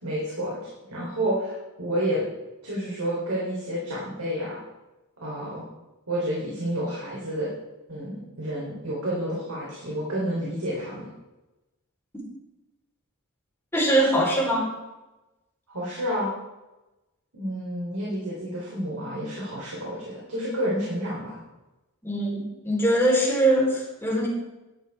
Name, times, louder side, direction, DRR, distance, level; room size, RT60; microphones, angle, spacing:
voice 1, 0.0-2.2 2.6-4.6 5.2-5.6 6.1-7.5 7.9-11.1 15.7-16.3 17.3-21.4, equal, 85° right, -6 dB, 3.7 m, -30 dB
voice 2, 13.7-14.7 22.0-24.3, right 1 dB, 10° left, -5 dB, 4.1 m, -22 dB
12.0 x 11.5 x 3.6 m, 1.0 s
head